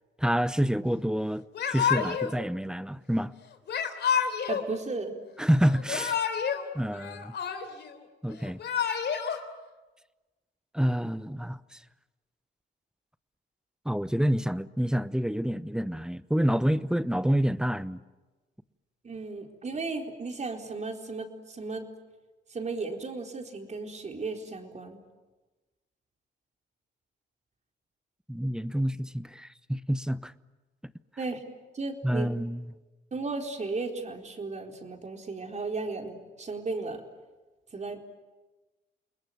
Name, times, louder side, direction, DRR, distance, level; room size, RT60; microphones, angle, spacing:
voice 1, 0.2-3.3 5.4-6.2 6.7-7.3 8.2-8.6 10.7-11.8 13.8-18.0 28.3-30.3 32.0-32.6, equal, 5° right, 0.9 m, -28 dB
Yell / Crying sobbing, 1.5-2.3 3.7-4.7 5.7-6.6 6.9-7.9 8.4-9.4, left 7 dB, 60° left, 3.4 m, -29 dB
voice 2, 4.5-5.1 19.0-21.9 22.5-25.0 31.2-31.4 31.7-32.3 33.1-37.0 37.7-38.0, right 3 dB, 35° right, 4.2 m, -35 dB
29.5 x 21.0 x 9.3 m
cardioid pair, 90°, 20 cm